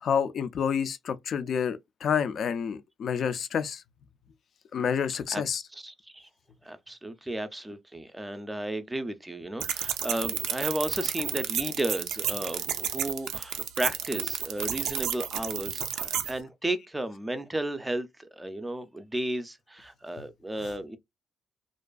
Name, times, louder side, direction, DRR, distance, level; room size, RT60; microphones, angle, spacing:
voice 1, 0.0-3.8 4.7-5.6 20.2-20.3, left 7 dB, 60° left, 0.3 m, -29 dB
voice 2, 5.7-6.3 6.7-21.0, right 1 dB, 10° right, 0.4 m, -34 dB
sound 1, 9.6-16.3, right 9 dB, 85° right, 0.3 m, -31 dB
2.5 x 2.2 x 2.3 m
cardioid pair, 90°, 0 cm